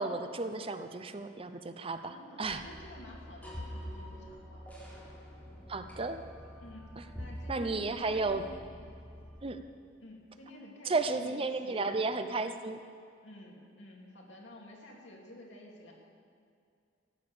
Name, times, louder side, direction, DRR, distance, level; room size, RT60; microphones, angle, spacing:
voice 1, 0.0-2.6 5.7-6.2 7.5-8.4 9.4-9.6 10.9-12.8, right 3 dB, 30° right, 9 dB, 0.6 m, -33 dB
voice 2, 2.1-4.7 6.6-8.9 10.0-12.0 13.2-15.9, left 1 dB, 70° left, -2 dB, 2.8 m, -51 dB
sound 1, 2.4-9.4, equal, 10° left, 3.9 m, -46 dB
15.0 x 10.0 x 6.9 m, 2.4 s
head